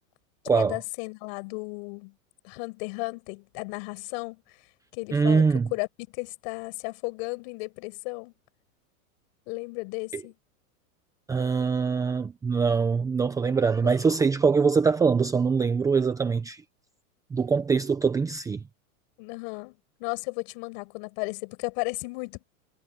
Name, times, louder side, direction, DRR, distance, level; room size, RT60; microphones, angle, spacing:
voice 1, 0.5-2.1 2.4-5.9 6.1-8.3 9.5-10.3 13.8-14.0 19.2-22.4, left 34 dB, 45° left, 5.9 m, -35 dB
voice 2, 5.1-5.7 10.1-10.2 11.3-16.6 17.3-18.6, right 5 dB, 10° right, 0.8 m, -23 dB
supercardioid pair, 155°, 43 cm